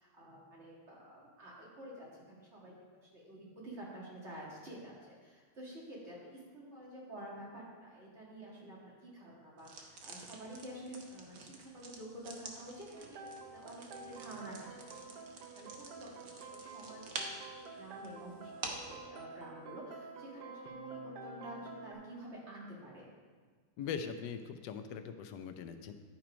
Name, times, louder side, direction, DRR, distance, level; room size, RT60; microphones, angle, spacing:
voice 1, 0.0-23.1, right 1 dB, 40° right, -6 dB, 2.4 m, -50 dB
sound 1, 9.6-19.0, right 3 dB, 60° right, 1.3 m, -48 dB
sound 2, 12.9-21.9, right 3 dB, 75° right, 1.3 m, -49 dB
voice 2, 23.8-25.9, left 7 dB, 85° left, 8 dB, 1.2 m, -41 dB
11.0 x 4.5 x 5.0 m, 1.5 s
omnidirectional pair, 1.8 m